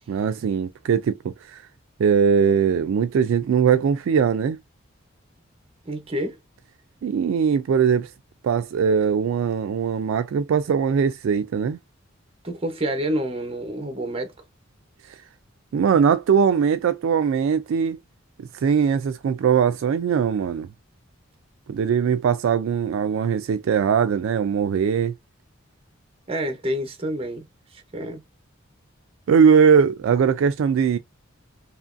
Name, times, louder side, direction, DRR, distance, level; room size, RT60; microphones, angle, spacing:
voice 1, 0.1-1.6 2.0-4.6 7.0-8.1 8.4-11.8 15.1-15.2 15.7-18.0 18.4-20.7 21.7-25.1 29.3-31.0, right 7 dB, 70° right, 0.3 m, -20 dB
voice 2, 5.9-6.4 12.4-14.3 26.3-27.5 27.9-28.2, right 1 dB, 30° right, 0.8 m, -28 dB
2.9 x 2.5 x 2.4 m
head